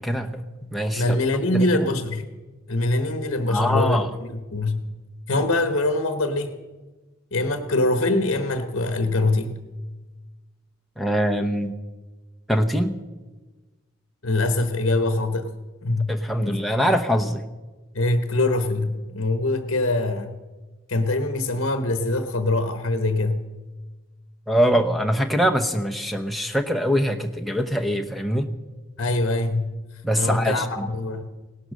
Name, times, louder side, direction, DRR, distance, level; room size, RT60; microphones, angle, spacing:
voice 1, 0.0-0.4 0.7-1.2 1.5-1.9 3.5-4.1 11.0-11.7 12.5-13.0 16.1-17.5 24.5-28.5 30.0-30.9, equal, ahead, 3 dB, 0.8 m, -23 dB
voice 2, 1.0-2.3 2.7-4.9 5.3-6.5 7.3-9.6 14.2-15.5 15.8-16.2 16.4-16.6 17.9-20.4 20.9-23.4 29.0-29.8 30.2-31.3, left 2 dB, 55° left, 8 dB, 1.0 m, -23 dB
17.5 x 11.5 x 6.4 m, 1.3 s
head